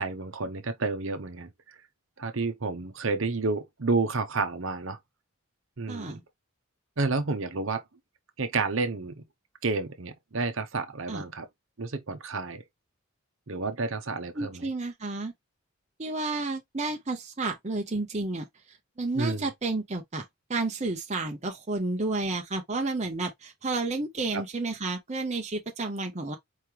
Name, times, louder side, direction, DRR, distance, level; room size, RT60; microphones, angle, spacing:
voice 1, 0.0-1.5 2.2-5.0 5.8-6.2 7.0-7.8 8.4-9.2 9.6-11.5 11.8-12.6 13.5-14.7 19.1-19.5 24.3-24.4, right 3 dB, 60° right, 0.8 m, -30 dB
voice 2, 5.9-6.2 11.1-11.2 14.3-15.3 16.0-18.5 19.0-20.2 20.5-26.4, right 3 dB, 30° right, 0.7 m, -31 dB
4.7 x 3.2 x 2.8 m
head